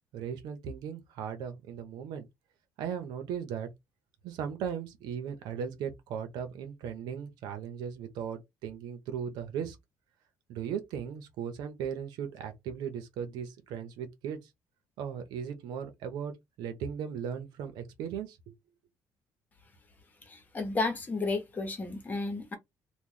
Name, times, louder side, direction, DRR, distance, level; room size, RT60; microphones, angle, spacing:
voice 1, 0.1-2.3 2.8-3.7 4.2-9.8 10.5-14.4 15.0-16.3 16.6-18.5, right 8 dB, 90° right, 0.8 m, -37 dB
voice 2, 20.2-22.5, left 3 dB, 25° left, 1.0 m, -32 dB
3.1 x 2.3 x 3.8 m
cardioid pair, 145°, 7 cm